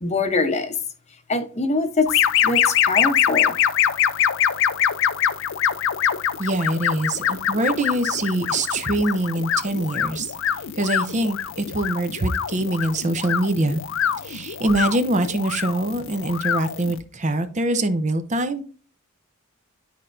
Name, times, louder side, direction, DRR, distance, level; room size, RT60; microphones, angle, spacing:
voice 1, 0.0-0.8 1.3-2.2 2.4-3.5, left 3 dB, 30° left, 0.8 m, -23 dB
sound 1, 2.1-17.0, left 9 dB, 60° left, 0.5 m, -24 dB
voice 2, 6.4-10.3 10.8-13.8 14.2-18.6, right 1 dB, 35° right, 0.7 m, -24 dB
11.5 x 4.3 x 2.6 m
head